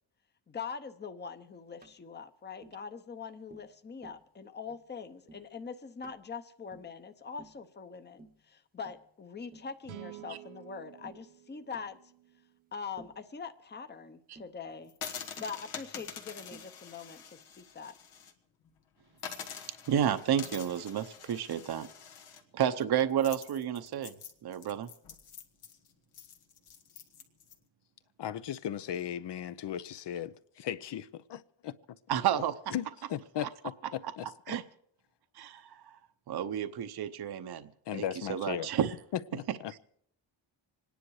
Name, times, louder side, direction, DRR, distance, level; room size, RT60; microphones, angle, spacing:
voice 1, 0.5-12.0 12.7-14.9 15.4-17.9, left 5 dB, 20° left, 0.8 m, -43 dB
Tap, 1.8-2.0 2.6-2.8 3.5-3.7 4.0-4.3 4.7-4.9 5.3-5.5 6.0-6.2 6.7-7.0 7.4-7.6 8.2-8.4 8.8-9.1 9.5-9.7 10.2-10.4 11.0-11.3 11.7-11.9 13.0-13.2 14.3-14.6 15.4-15.6 16.0-16.2 16.5-16.8, right 3 dB, 20° right, 0.9 m, -54 dB
sound 1, 9.8-13.2, right 15 dB, 80° right, 0.9 m, -51 dB
sound 2, 14.9-18.3 18.7-18.8 19.2-27.5, left 7 dB, 85° left, 1.8 m, -46 dB
voice 2, 19.9-21.9 22.5-24.1 24.4-24.9 32.1-32.5 34.5-34.6 35.3-36.0 36.3-38.0 38.3-38.9, right 9 dB, 50° right, 0.8 m, -31 dB
voice 3, 28.2-31.7 32.7-34.6 37.9-38.7 39.3-39.8, left 10 dB, 60° left, 0.8 m, -37 dB
26.0 x 10.5 x 4.8 m
cardioid pair, 130°, 48 cm